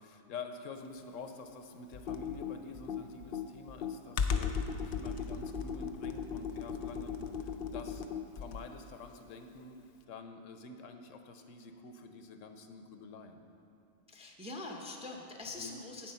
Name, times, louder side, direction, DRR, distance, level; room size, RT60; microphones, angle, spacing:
voice 1, 0.0-8.0 8.4-9.8 10.1-13.5 15.6-15.8, left 4 dB, 75° left, 6 dB, 1.0 m, -48 dB
Computer keyboard, 1.9-8.8, left 6 dB, 55° left, 0.6 m, -36 dB
voice 2, 4.9-5.3 14.1-16.1, left 2 dB, 5° right, 1 dB, 0.5 m, -44 dB
8.8 x 7.6 x 5.6 m, 2.7 s
omnidirectional pair, 1.4 m